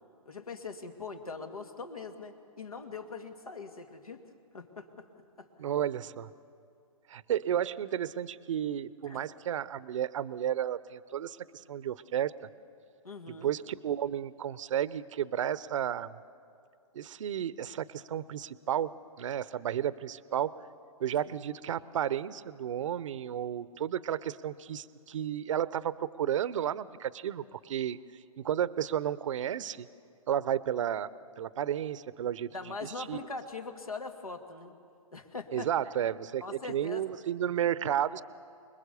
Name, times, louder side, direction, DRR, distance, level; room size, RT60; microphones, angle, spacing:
voice 1, 0.3-4.2 4.5-5.1 5.4-5.5 9.0-9.3 13.0-13.5 21.2-21.4 32.5-34.8 35.1-35.7 36.4-37.0, left 4 dB, 90° left, 6 dB, 2.3 m, -42 dB
voice 2, 5.6-6.3 7.1-12.3 13.4-16.1 16.9-18.9 19.2-20.5 21.0-28.0 28.4-29.9 30.3-31.1 31.4-32.5 32.8-33.3 35.5-38.2, right 10 dB, 60° right, 17 dB, 0.8 m, -32 dB
26.0 x 21.0 x 6.9 m, 2.5 s
hypercardioid pair, 125°, 18 cm